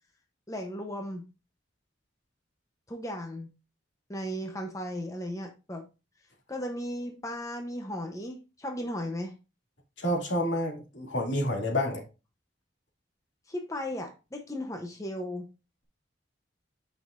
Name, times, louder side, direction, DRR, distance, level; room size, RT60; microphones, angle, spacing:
voice 1, 0.5-1.3 2.9-3.5 4.1-5.8 6.5-9.4 13.5-15.5, left 1 dB, 15° left, 4 dB, 0.7 m, -36 dB
voice 2, 10.0-12.0, left 1 dB, 75° left, 0 dB, 2.4 m, -29 dB
8.9 x 5.5 x 2.5 m, 0.29 s
head